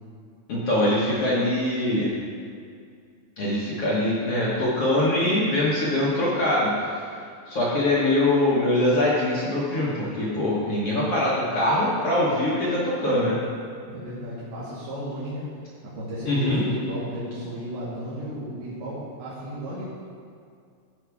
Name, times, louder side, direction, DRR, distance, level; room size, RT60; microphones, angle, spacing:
voice 1, 0.5-2.1 3.4-7.1 7.5-13.4 16.3-16.6, left 1 dB, 55° left, -7 dB, 1.7 m, -23 dB
voice 2, 13.9-15.4 15.9-19.9, equal, 80° right, -10 dB, 3.5 m, -34 dB
13.0 x 5.1 x 4.8 m, 2.3 s
omnidirectional pair, 4.4 m